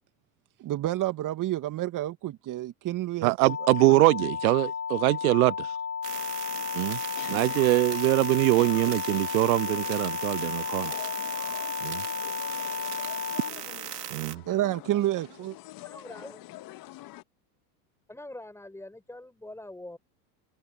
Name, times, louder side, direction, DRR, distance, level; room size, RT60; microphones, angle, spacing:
voice 1, 0.6-3.3 3.9-4.0 14.5-15.5, right 14 dB, 40° right, 2.6 m, -29 dB
voice 2, 3.2-5.7 6.7-7.0 7.3-10.9 11.8-12.0 14.1-14.4, right 22 dB, 70° right, 0.7 m, -23 dB
sound 1, 3.5-13.5, left 5 dB, 30° left, 3.0 m, -33 dB
sound 2, 6.0-14.3, right 10 dB, 90° right, 3.5 m, -38 dB
sound 3, 6.1-17.2, left 17 dB, 45° left, 2.0 m, -46 dB
voice 3, 15.8-16.4 18.1-20.0, left 1 dB, 5° left, 5.7 m, -44 dB
open air
hypercardioid pair, 90°, 46 cm